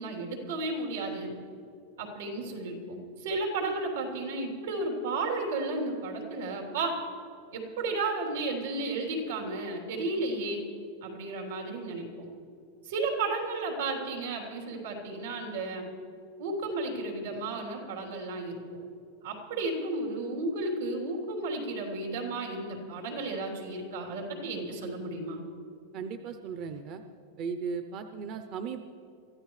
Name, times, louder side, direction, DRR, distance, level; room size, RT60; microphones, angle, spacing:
voice 1, 0.0-1.4 2.0-7.0 7.5-10.7 11.0-12.3 12.8-15.9 16.4-18.6 19.2-25.4, right 2 dB, 85° right, 0 dB, 3.3 m, -33 dB
voice 2, 25.9-27.0 27.4-28.8, right 6 dB, 35° right, 8 dB, 0.5 m, -36 dB
24.0 x 14.0 x 3.2 m, 2.6 s
supercardioid pair, 170°, 0 cm